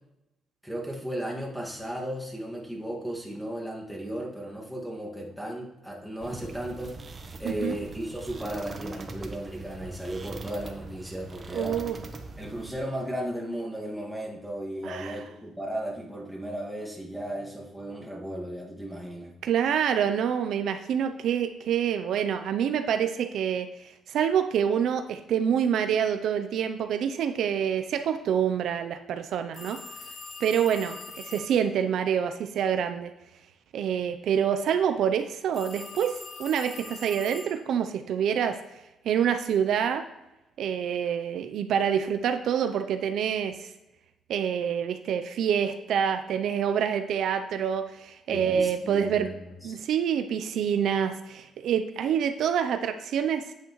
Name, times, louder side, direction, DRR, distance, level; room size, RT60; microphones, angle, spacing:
voice 1, 0.6-7.0 7.4-11.8 12.4-19.3 48.3-49.3 49.6-49.8, right 1 dB, ahead, -3 dB, 1.9 m, -35 dB
sound 1, 6.2-12.8, right 3 dB, 35° right, 1.0 m, -42 dB
voice 2, 7.4-7.8 11.5-12.0 14.8-15.2 19.4-29.8 30.4-33.1 33.7-38.6 39.0-40.0 40.6-43.7 44.3-49.3 49.6-53.5, right 8 dB, 75° right, 8 dB, 0.5 m, -27 dB
sound 2, 29.5-31.6 35.5-37.8, left 4 dB, 75° left, 1.8 m, -43 dB
8.9 x 8.1 x 3.1 m, 0.95 s
cardioid pair, 90°, 0 cm